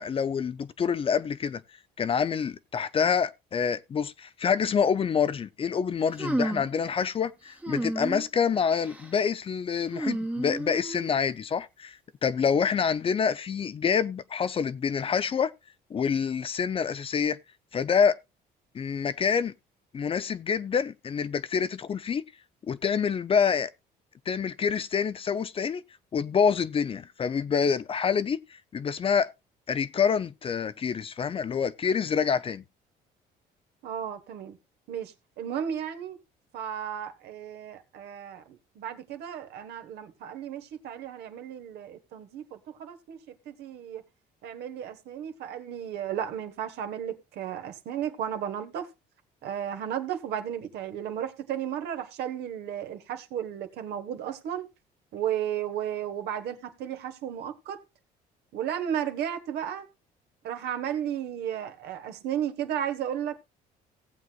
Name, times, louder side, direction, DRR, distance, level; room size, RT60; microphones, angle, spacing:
voice 1, 0.0-1.6 2.0-15.5 15.9-17.4 17.7-18.2 18.7-19.5 19.9-22.2 22.7-23.7 24.3-25.8 26.1-29.3 29.7-32.6, left 6 dB, 35° left, 0.5 m, -27 dB
sound 1, 6.2-6.8 7.6-8.3 8.7-9.1 9.9-11.1, right 1 dB, 10° right, 1.1 m, -31 dB
voice 2, 33.8-34.6 34.9-36.2 36.5-44.0 44.4-48.9 49.4-54.7 55.1-57.8 58.5-59.9 60.4-63.4, right 9 dB, 75° right, 1.4 m, -34 dB
18.0 x 7.7 x 2.4 m
cardioid pair, 110°, 17 cm